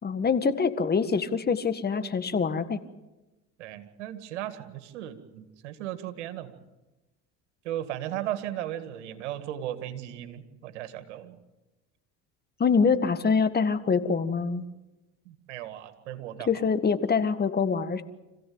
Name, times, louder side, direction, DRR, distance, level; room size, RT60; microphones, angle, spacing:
voice 1, 0.0-2.8 12.6-14.7 16.5-18.0, left 5 dB, 30° left, 11 dB, 1.8 m, -25 dB
voice 2, 3.6-6.5 7.6-11.4 15.3-16.7, right 12 dB, 90° right, 9 dB, 2.1 m, -36 dB
26.5 x 16.0 x 8.7 m, 1.1 s
supercardioid pair, 85°, 34 cm